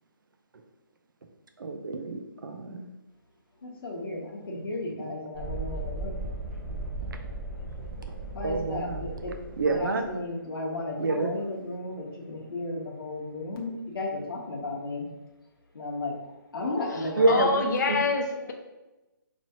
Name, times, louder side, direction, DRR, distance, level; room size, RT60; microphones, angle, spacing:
voice 1, 1.6-2.9 8.4-9.1 9.6-10.0 11.0-11.3 17.2-17.6, right 2 dB, 65° right, 6 dB, 0.6 m, -27 dB
voice 2, 3.6-6.2 7.8-7.9 8.3-9.3 9.7-15.0 15.7-17.4, left 2 dB, 85° left, -2 dB, 0.9 m, -34 dB
Thunderstorm, 5.3-12.8, right 2 dB, 30° right, 1.3 m, -38 dB
voice 3, 17.3-18.5, left 4 dB, 50° left, 3 dB, 0.5 m, -26 dB
4.5 x 2.9 x 2.8 m, 1.0 s
hypercardioid pair, 170°, 12 cm